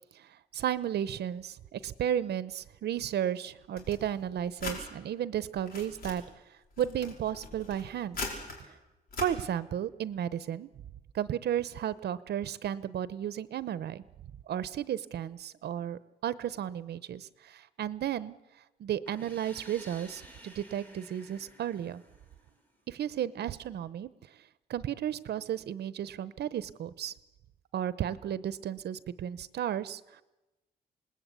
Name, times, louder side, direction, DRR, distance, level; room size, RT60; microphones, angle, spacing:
voice 1, 0.1-6.2 6.5-8.2 9.2-10.7 11.1-14.0 14.5-18.3 18.8-22.0 22.9-24.1 24.7-27.1 27.7-30.2, right 10 dB, 85° right, 15 dB, 0.8 m, -33 dB
sound 1, 3.8-4.8 5.4-6.2 6.7-8.6 9.1-9.3, left 3 dB, 65° left, 5.4 m, -40 dB
sound 2, 19.0-22.8, right 1 dB, 10° left, 5.1 m, -53 dB
27.5 x 19.5 x 8.4 m, 1.1 s
wide cardioid pair, 165°, 17 cm